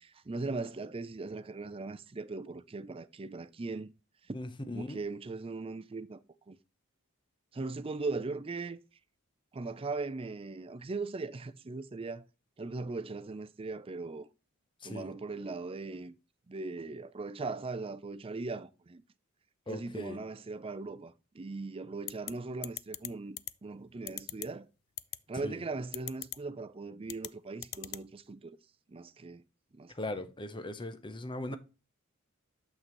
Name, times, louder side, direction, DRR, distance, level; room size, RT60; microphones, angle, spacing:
voice 1, 0.0-3.9 4.3-4.4 4.7-6.6 7.5-8.8 9.5-12.2 12.6-14.3 14.8-16.1 16.5-19.0 19.7-24.7 25.3-28.6 28.9-29.4 29.7-30.2 31.5-31.6, right 3 dB, 25° right, 0.4 m, -39 dB
voice 2, 4.3-5.0 14.8-15.1 19.7-20.2 25.4-25.6 29.9-31.6, left 1 dB, 25° left, 0.7 m, -39 dB
sound 1, 22.1-22.3 22.6-23.1 23.4-23.5 24.1-24.5 25.0-25.2 25.9-26.4 27.1-27.3 27.6-28.0, left 16 dB, 50° left, 0.3 m, -38 dB
6.7 x 6.2 x 3.0 m
head